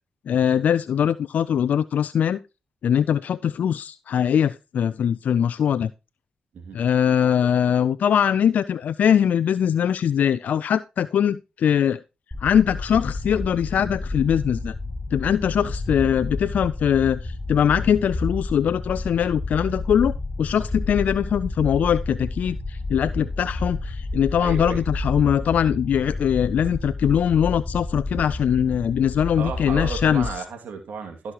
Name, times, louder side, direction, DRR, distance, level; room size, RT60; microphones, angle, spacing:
voice 1, 0.3-2.4 2.8-5.9 6.7-12.0 12.4-14.7 15.1-20.1 20.4-30.3, left 8 dB, 70° left, 15 dB, 0.4 m, -22 dB
sound 1, 12.3-30.3, left 2 dB, 15° left, 6.4 m, -30 dB
voice 2, 24.4-24.8 29.3-31.3, right 5 dB, 75° right, 5 dB, 2.3 m, -33 dB
14.5 x 6.2 x 2.9 m, 0.28 s
supercardioid pair, 45°, 3 cm